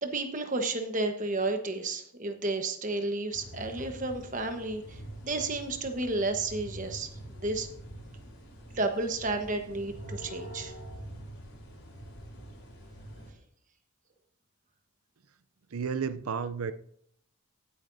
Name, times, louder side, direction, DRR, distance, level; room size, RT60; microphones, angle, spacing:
voice 1, 0.0-7.1 7.4-7.7 8.7-10.7, right 2 dB, 35° right, 1.2 m, -32 dB
sound 1, 3.3-13.3, right 1 dB, 90° left, 3.9 m, -45 dB
voice 2, 15.7-16.7, right 6 dB, 80° right, 0.5 m, -32 dB
15.0 x 8.5 x 2.7 m
head